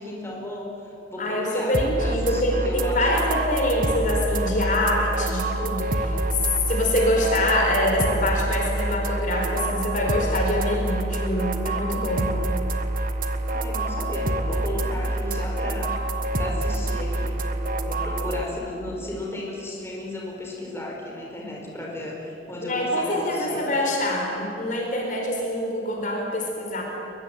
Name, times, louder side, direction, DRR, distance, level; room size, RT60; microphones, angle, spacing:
voice 1, 0.0-3.3 13.5-15.9 16.4-17.4 17.9-23.7, left 1 dB, 15° left, -2 dB, 4.9 m, -34 dB
voice 2, 1.2-6.1 6.7-12.4 22.6-26.8, left 1 dB, 45° left, 1 dB, 4.5 m, -25 dB
sound 1, 1.7-18.4, right 1 dB, 50° right, 1.5 m, -27 dB
23.0 x 22.5 x 9.0 m, 2.8 s
head